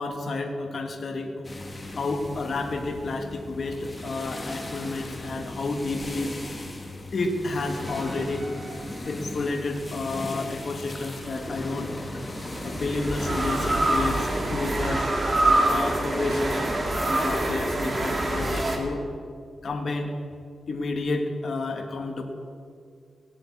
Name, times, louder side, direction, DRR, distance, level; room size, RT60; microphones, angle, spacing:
voice 1, 0.0-1.4 1.9-6.4 7.1-8.5 9.1-11.9 12.6-15.1 15.7-16.6 17.1-19.0 19.6-20.1 20.7-22.2, left 3 dB, 50° left, 3 dB, 1.3 m, -30 dB
sound 1, 1.4-14.9, left 2 dB, 20° left, 1.5 m, -38 dB
sound 2, 7.9-9.4 11.2-18.8, right 1 dB, 25° right, 2.0 m, -26 dB
17.0 x 8.0 x 8.3 m, 2.3 s
wide cardioid pair, 130°, 0 cm